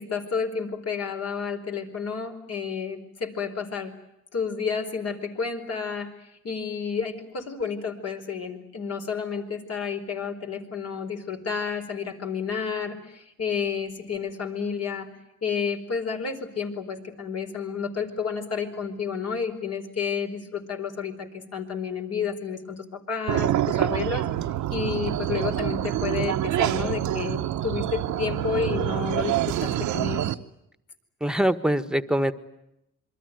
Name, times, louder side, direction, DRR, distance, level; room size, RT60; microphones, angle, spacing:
voice 1, 0.0-3.9 4.3-15.1 15.4-30.4, left 6 dB, 55° left, 5 dB, 4.7 m, -31 dB
sound 1, 23.3-30.3, right 12 dB, 80° right, 1.1 m, -26 dB
voice 2, 31.2-32.3, equal, ahead, 12 dB, 1.5 m, -23 dB
27.5 x 23.5 x 9.3 m, 0.83 s
cardioid pair, 110°, 29 cm